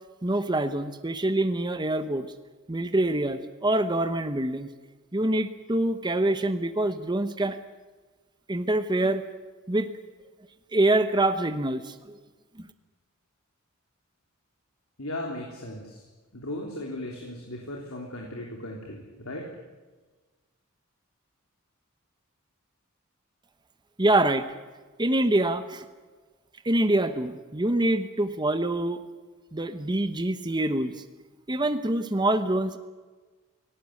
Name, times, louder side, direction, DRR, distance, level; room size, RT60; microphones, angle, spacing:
voice 1, 0.2-2.3 2.7-4.7 5.1-7.6 8.5-9.2 9.7-9.9 10.7-12.2 24.0-24.4 25.0-25.8 26.6-29.0 29.5-30.9 31.5-32.8, right 1 dB, 20° right, 9 dB, 1.0 m, -25 dB
voice 2, 15.0-16.0 16.3-19.5, left 1 dB, 75° left, 0 dB, 3.4 m, -37 dB
18.0 x 18.0 x 9.7 m, 1.3 s
head